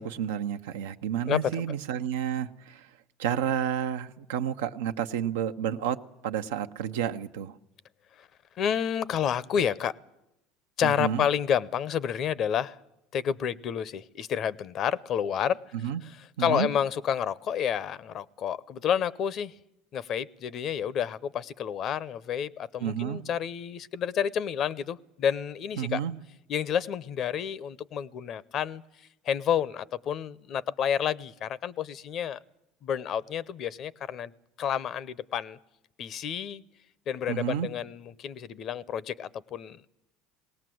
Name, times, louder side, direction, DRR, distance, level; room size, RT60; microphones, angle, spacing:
voice 1, 0.0-2.9 3.2-7.5 10.8-11.3 15.7-16.0 16.4-16.7 22.8-23.2 25.8-26.1 37.3-37.7, right 9 dB, 85° right, 0.8 m, -30 dB
voice 2, 8.6-10.0 10.8-12.8 13.1-15.6 16.0-16.1 16.4-19.5 19.9-26.0 26.5-28.8 29.2-32.4 32.8-34.3 34.6-35.6 36.0-36.6 37.1-39.8, left 8 dB, 50° left, 0.7 m, -29 dB
20.0 x 18.0 x 7.8 m
supercardioid pair, 95°, 0 cm